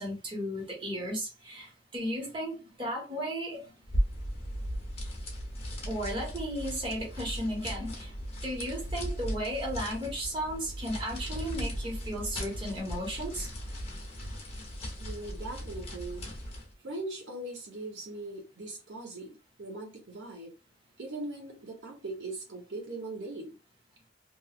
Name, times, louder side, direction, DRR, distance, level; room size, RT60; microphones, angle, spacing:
voice 1, 0.0-3.7 5.9-8.1 8.4-13.5, equal, 25° right, 1.2 m, -35 dB
sound 1, 3.8-16.7, equal, 35° left, 1.0 m, -37 dB
voice 2, 15.0-16.2 16.8-20.5 21.0-23.5, right 2 dB, 85° right, 1.0 m, -40 dB
3.0 x 2.5 x 2.4 m
head